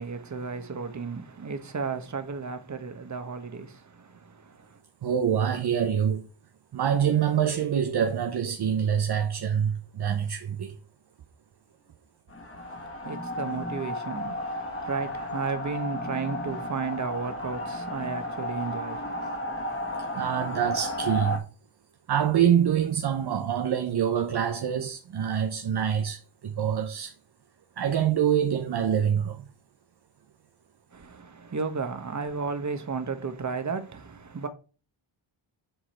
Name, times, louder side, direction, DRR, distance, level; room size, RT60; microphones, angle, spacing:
voice 1, 0.0-4.8 12.6-19.3 30.9-34.5, right 5 dB, 35° right, 1.5 m, -34 dB
voice 2, 5.0-6.3 6.7-10.8 20.1-21.4 22.1-27.1 27.8-29.5, right 8 dB, 50° right, 0.9 m, -25 dB
sound 1, 12.3-21.4, left 1 dB, 25° left, 1.9 m, -33 dB
8.0 x 4.1 x 4.5 m
cardioid pair, 90°, 50 cm